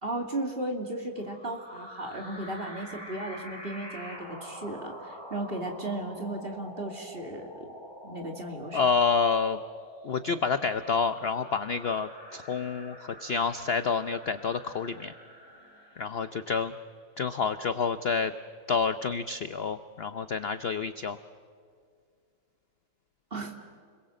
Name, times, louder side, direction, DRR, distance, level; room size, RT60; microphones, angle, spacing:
voice 1, 0.0-7.7 8.0-8.8 23.3-23.5, right 1 dB, 30° right, 3 dB, 2.8 m, -35 dB
sound 1, 1.2-16.8, equal, 15° left, 5.1 m, -46 dB
voice 2, 8.7-9.6 10.0-15.1 16.0-16.7 17.2-18.3 18.7-21.2, left 5 dB, 55° left, 11 dB, 0.7 m, -28 dB
30.0 x 22.0 x 7.7 m, 2.2 s
omnidirectional pair, 1.8 m